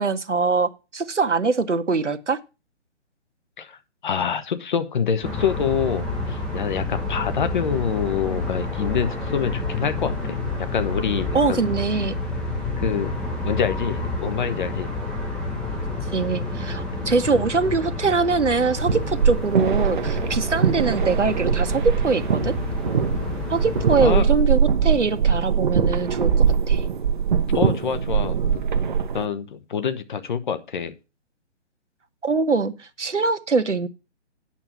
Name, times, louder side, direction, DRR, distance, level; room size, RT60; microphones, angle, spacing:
voice 1, 0.0-2.4 11.3-12.1 16.1-22.5 23.5-26.8 32.2-33.9, right 4 dB, 80° right, 9 dB, 1.1 m, -23 dB
voice 2, 4.0-11.7 12.8-13.1 13.4-14.9 24.0-24.3 27.5-28.6 29.1-30.9, left 7 dB, 40° left, 10 dB, 1.1 m, -26 dB
sound 1, 5.2-24.2, left 2 dB, ahead, 0.7 m, -29 dB
sound 2, 18.5-29.3, right 7 dB, 45° right, 0.7 m, -22 dB
8.8 x 6.5 x 6.8 m, 0.30 s
figure-of-eight pair, 135°, 35 cm